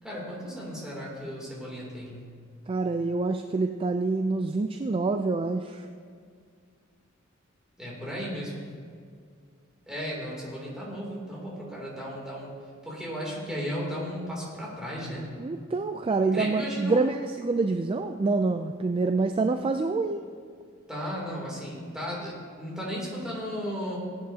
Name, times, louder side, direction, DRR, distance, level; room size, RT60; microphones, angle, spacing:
voice 1, 0.0-2.2 7.8-8.6 9.9-12.5 12.8-15.3 16.3-17.1 20.9-24.0, equal, 5° right, -5 dB, 2.9 m, -35 dB
voice 2, 2.7-5.9 15.4-20.2, right 3 dB, 25° right, 6 dB, 0.3 m, -26 dB
18.5 x 8.8 x 2.8 m, 2.1 s
head